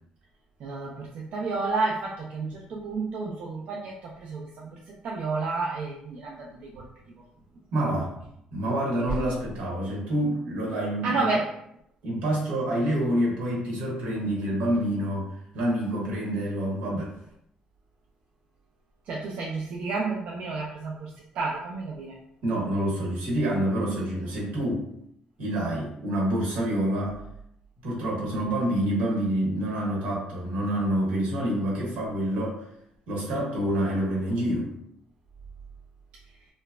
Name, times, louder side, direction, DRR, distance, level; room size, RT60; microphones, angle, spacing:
voice 1, 0.6-6.9 11.0-11.5 19.1-22.2, right 3 dB, 60° right, -2 dB, 0.3 m, -31 dB
voice 2, 7.7-8.1 8.5-11.3 12.0-17.1 22.4-24.9 25.4-27.2 27.8-32.6 33.1-34.8, right 1 dB, 85° right, -3 dB, 1.1 m, -27 dB
3.0 x 2.0 x 2.3 m, 0.76 s
cardioid pair, 160°, 2 cm